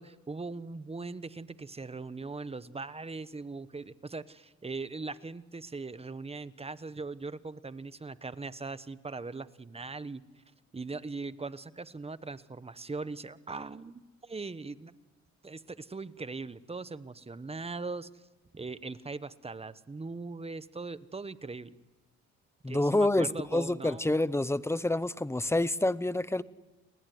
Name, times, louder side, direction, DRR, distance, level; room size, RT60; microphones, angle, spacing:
voice 1, 0.0-10.2 10.7-14.9 15.4-18.1 18.5-21.7 22.7-24.2, right 3 dB, 20° right, 14 dB, 1.1 m, -40 dB
voice 2, 22.6-26.4, left 2 dB, 10° left, 16 dB, 0.9 m, -28 dB
30.0 x 20.0 x 9.7 m, 1.1 s
cardioid pair, 90°, 30 cm